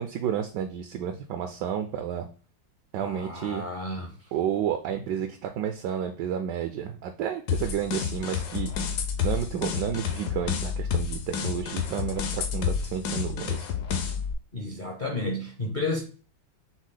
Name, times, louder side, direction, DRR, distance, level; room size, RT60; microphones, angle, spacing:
voice 1, 0.0-2.3 2.9-3.6 4.3-8.7 9.2-13.7, right 9 dB, 75° right, 1.1 m, -31 dB
voice 2, 3.0-4.1 14.5-16.0, left 2 dB, 45° left, 0.6 m, -32 dB
sound 1, 7.5-14.3, left 7 dB, 65° left, 1.2 m, -30 dB
6.2 x 2.1 x 3.8 m
omnidirectional pair, 2.1 m